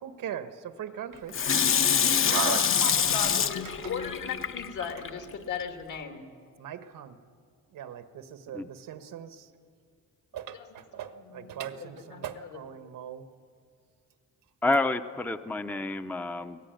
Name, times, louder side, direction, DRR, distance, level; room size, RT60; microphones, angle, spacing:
voice 1, 0.0-1.3 2.2-2.6 6.6-7.2 7.7-9.5 10.3-13.2, right 10 dB, 85° right, 10 dB, 1.4 m, -38 dB
Water tap faucet / Sink (filling or washing), 1.3-5.1 5.6-5.7, left 7 dB, 40° left, 0.8 m, -25 dB
voice 2, 2.2-6.3 10.5-10.7 10.9-12.6, left 6 dB, 70° left, 5 dB, 2.6 m, -38 dB
voice 3, 14.6-16.6, left 2 dB, 5° left, 10 dB, 0.6 m, -29 dB
23.5 x 17.5 x 9.2 m, 2.3 s
cardioid pair, 150°, 32 cm